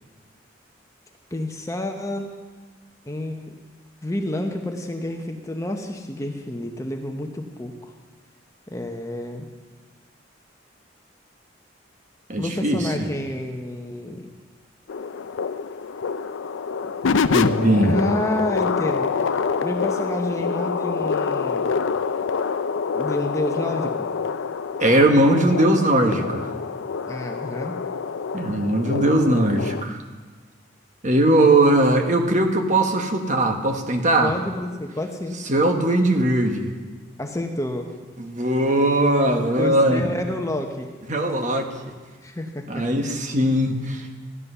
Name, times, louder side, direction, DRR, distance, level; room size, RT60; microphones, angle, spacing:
voice 1, 1.3-2.3 3.0-3.6 4.0-7.9 8.7-9.5 12.4-14.3 17.8-21.7 22.9-24.1 27.1-27.8 34.2-35.3 37.2-37.9 39.5-40.9 42.2-42.8, left 1 dB, 15° left, 3 dB, 0.8 m, -29 dB
voice 2, 12.3-12.9 17.3-18.0 24.8-26.5 28.3-30.0 31.0-34.3 35.5-36.7 38.2-40.1 41.1-41.7 42.7-44.3, right 1 dB, 40° right, 4 dB, 1.2 m, -20 dB
sound 1, 14.9-29.8, left 5 dB, 85° left, 0.5 m, -26 dB
13.5 x 10.5 x 5.6 m, 1.4 s
head